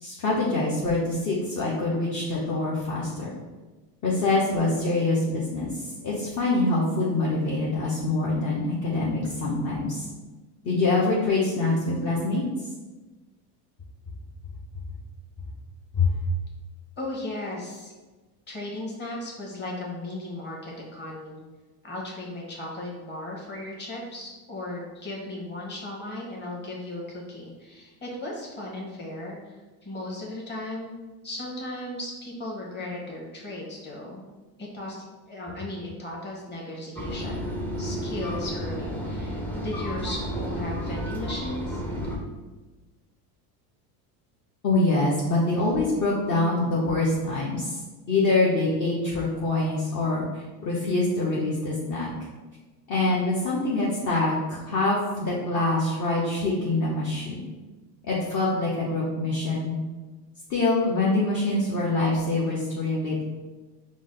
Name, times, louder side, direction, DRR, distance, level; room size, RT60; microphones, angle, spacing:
voice 1, 0.0-3.3 4.0-10.1 10.6-12.4 15.9-16.1 44.6-47.8 48.1-52.1 52.9-57.4 58.0-59.8 60.5-63.2, left 2 dB, 35° left, -6 dB, 0.9 m, -25 dB
voice 2, 17.0-17.9 18.5-21.4 21.8-30.9 31.2-34.3 34.6-37.5 37.8-41.8, left 1 dB, 20° left, -3 dB, 1.3 m, -36 dB
sound 1, 37.0-42.2, equal, 5° left, 0.4 m, -31 dB
4.9 x 2.1 x 3.8 m, 1.2 s
supercardioid pair, 105°, 49 cm